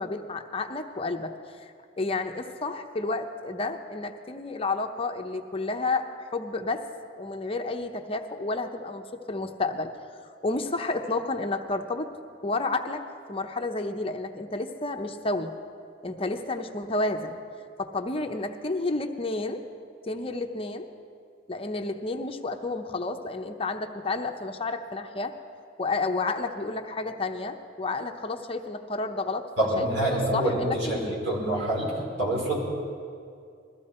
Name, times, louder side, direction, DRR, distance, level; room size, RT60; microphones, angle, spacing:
voice 1, 0.0-1.3 1.6-1.7 2.0-6.8 7.2-9.9 10.4-12.1 12.4-15.5 16.0-17.4 17.8-19.6 20.0-20.9 21.5-25.3 25.8-29.5 29.8-31.2, left 3 dB, 30° left, 5 dB, 0.8 m, -31 dB
voice 2, 29.6-32.6, right 1 dB, 90° right, -4 dB, 4.9 m, -26 dB
21.0 x 14.5 x 4.4 m, 2.4 s
head